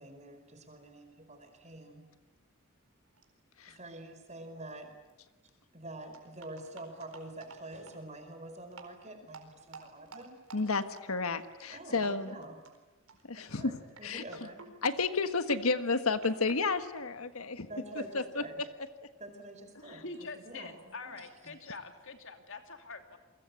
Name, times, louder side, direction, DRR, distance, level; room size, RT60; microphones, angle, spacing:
voice 1, 0.0-2.1 3.7-5.0 5.7-10.4 11.7-12.6 13.3-14.7 17.6-18.6 19.0-20.1 20.3-21.6, right 1 dB, 30° right, 7 dB, 4.7 m, -47 dB
sound 1, 3.2-3.3 3.6-3.7 4.7-4.8 5.1-5.2 6.1-8.0 8.7-8.9 9.3-11.7 12.0-12.1 12.4-12.8 13.1-13.4 13.9-17.7, right 4 dB, 80° right, 4.4 m, -52 dB
voice 2, 10.5-12.3 13.2-14.2 14.8-17.7 17.9-18.6 19.8-20.0 21.7-21.8, left 4 dB, 80° left, 10 dB, 1.6 m, -32 dB
voice 3, 20.0-23.2, left 3 dB, 60° left, 6 dB, 2.8 m, -45 dB
29.5 x 23.5 x 8.4 m, 1.1 s
head